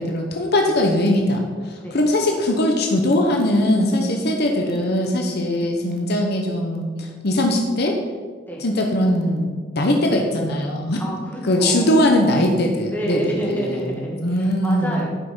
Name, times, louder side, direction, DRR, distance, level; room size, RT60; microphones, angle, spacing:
voice 1, 0.0-8.0 8.6-9.5 9.8-11.0 11.4-13.8 14.2-15.0, left 1 dB, 60° left, 2 dB, 1.1 m, -20 dB
voice 2, 5.2-5.5 8.5-8.6 11.0-12.1 12.9-15.1, right 1 dB, 10° left, -4 dB, 2.4 m, -29 dB
11.5 x 5.8 x 5.6 m, 1.5 s
head